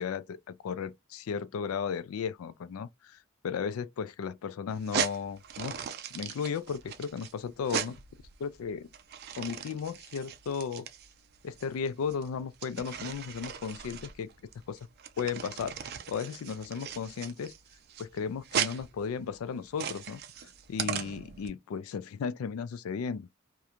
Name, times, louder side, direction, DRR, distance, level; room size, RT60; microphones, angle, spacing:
voice 1, 0.0-3.2 3.4-5.8 6.1-8.0 8.4-8.9 9.4-10.9 11.4-14.3 14.7-14.8 15.2-15.8 16.1-17.5 18.0-20.2 20.7-23.3, left 6 dB, 75° left, 0.3 m, -35 dB
sound 1, 4.7-21.5, right 8 dB, 50° right, 0.4 m, -38 dB
2.4 x 2.2 x 2.8 m
head